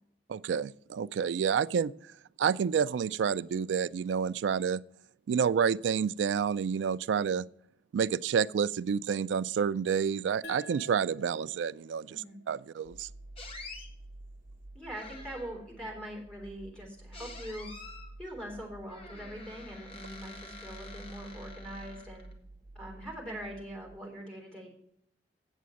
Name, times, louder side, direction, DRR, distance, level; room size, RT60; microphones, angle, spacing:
voice 1, 0.3-1.9 2.4-4.8 5.3-7.5 7.9-13.1, right 7 dB, 85° right, 0.3 m, -29 dB
sound 1, 10.4-13.6, equal, 70° left, 1.1 m, -50 dB
voice 2, 12.1-12.4 14.7-17.7 18.2-22.3 22.7-24.7, right 1 dB, 5° left, 3.3 m, -42 dB
sound 2, 12.8-24.0, right 1 dB, 25° right, 0.5 m, -50 dB
sound 3, 13.4-13.9 14.9-15.7 17.1-18.1 18.9-22.3, left 3 dB, 35° left, 1.7 m, -48 dB
8.3 x 7.6 x 6.2 m
head